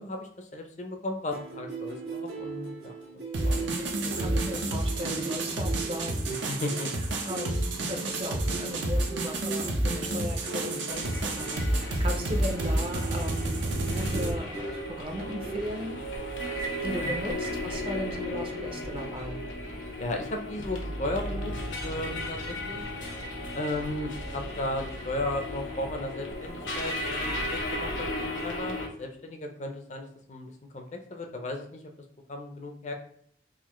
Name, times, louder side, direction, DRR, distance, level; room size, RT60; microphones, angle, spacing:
voice 1, 0.0-2.9 3.4-4.2 6.3-6.9 17.0-17.1 20.0-21.5 21.8-22.8 23.5-31.9 32.3-32.9, left 1 dB, 40° left, 4 dB, 0.5 m, -35 dB
sound 1, 1.3-16.0, right 4 dB, 60° right, 1.4 m, -39 dB
sound 2, 3.3-14.3, right 1 dB, 80° right, 0.7 m, -30 dB
voice 2, 4.0-6.3 7.2-16.0 16.8-19.4, equal, 30° right, 3 dB, 0.5 m, -37 dB
sound 3, 10.9-28.9, left 1 dB, 90° left, 0.9 m, -35 dB
3.8 x 2.5 x 3.0 m, 0.67 s
head